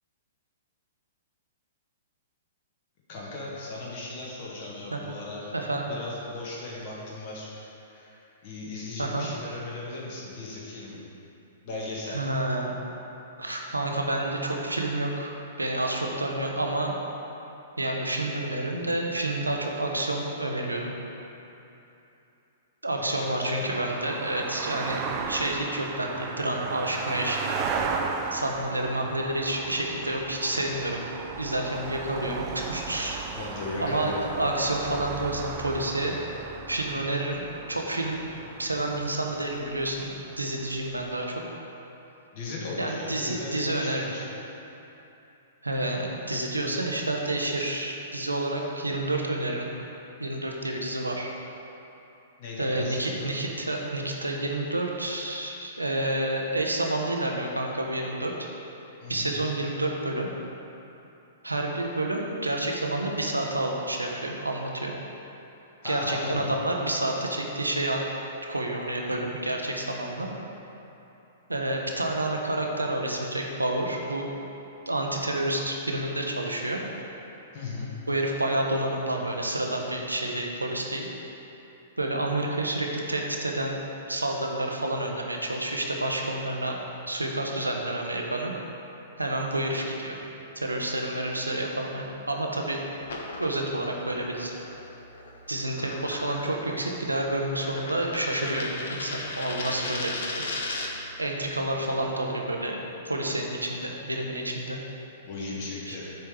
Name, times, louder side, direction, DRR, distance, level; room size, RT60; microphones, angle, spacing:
voice 1, 3.1-5.5 5.8-11.0 11.6-12.3 23.0-23.8 33.3-34.3 42.3-44.2 52.4-53.3 59.0-59.3 65.8-66.5 77.5-77.9 105.2-106.1, left 2 dB, 45° left, -5 dB, 1.6 m, -37 dB
voice 2, 5.5-5.9 9.0-9.3 12.1-12.7 13.4-16.9 17.8-20.9 22.8-27.5 28.3-31.0 31.4-33.2 33.8-36.2 36.7-37.4 37.7-38.2 38.6-41.4 42.8-44.1 45.6-49.7 50.2-51.3 52.6-58.3 59.1-60.3 61.4-64.9 65.8-68.0 68.5-70.3 71.5-74.3 74.9-76.8 78.1-81.1 82.0-83.8 84.1-86.8 87.1-88.5 89.2-90.2 90.5-92.8 93.4-94.6 95.5-100.4 101.2-104.8 105.9-106.0, right 1 dB, 90° right, 0 dB, 0.9 m, -29 dB
sound 1, 23.7-41.1, right 5 dB, 35° right, 0.5 m, -36 dB
sound 2, 93.0-101.1, left 2 dB, 65° left, 0.9 m, -37 dB
7.8 x 3.5 x 6.2 m, 2.9 s
figure-of-eight pair, 110°, 0 cm